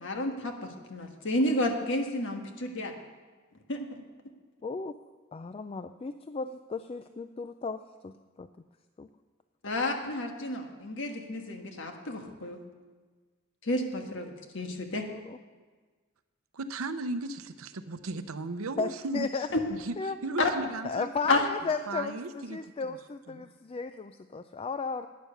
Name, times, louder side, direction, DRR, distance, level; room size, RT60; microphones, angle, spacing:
voice 1, 0.0-2.9 3.7-4.0 9.6-12.6 13.6-15.1 20.4-20.5 21.3-21.4, left 1 dB, 60° left, 4 dB, 1.4 m, -31 dB
voice 2, 4.6-4.9 5.3-8.5 9.0-9.1 15.1-15.4 18.8-19.5 20.0-20.2 20.8-25.1, left 4 dB, 25° left, 10 dB, 0.3 m, -35 dB
voice 3, 16.5-19.3 19.7-19.9 20.2-21.1 21.9-23.0 23.3-23.5, right 2 dB, 85° right, 11 dB, 0.7 m, -36 dB
12.0 x 9.4 x 6.6 m, 1.4 s
head